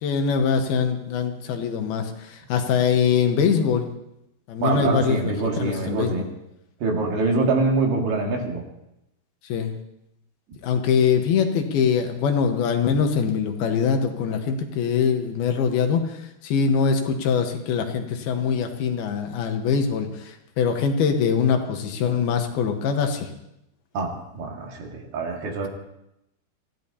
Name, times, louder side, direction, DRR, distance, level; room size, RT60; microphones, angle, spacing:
voice 1, 0.0-3.9 4.5-6.2 9.5-9.7 10.6-23.3, left 6 dB, 75° left, 5 dB, 3.0 m, -23 dB
voice 2, 4.6-6.3 6.8-8.6 23.9-25.7, right 3 dB, 70° right, 0 dB, 3.9 m, -24 dB
24.5 x 15.0 x 2.8 m, 0.83 s
omnidirectional pair, 4.7 m